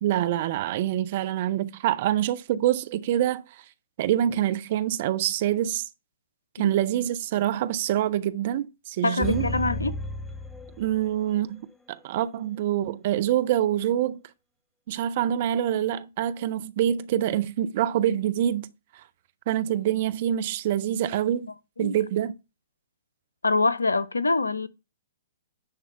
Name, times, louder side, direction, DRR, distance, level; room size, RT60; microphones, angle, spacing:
voice 1, 0.0-3.4 4.0-5.9 6.6-9.5 10.8-14.2 14.9-18.7 19.5-21.5 21.8-22.3, right 11 dB, 45° right, 0.7 m, -25 dB
voice 2, 9.0-10.0 21.8-21.9 23.4-24.7, left 3 dB, 80° left, 0.7 m, -24 dB
sound 1, 9.2-11.4 11.7-11.8, left 1 dB, 10° left, 0.8 m, -33 dB
10.5 x 3.5 x 5.6 m
figure-of-eight pair, 115°, 0 cm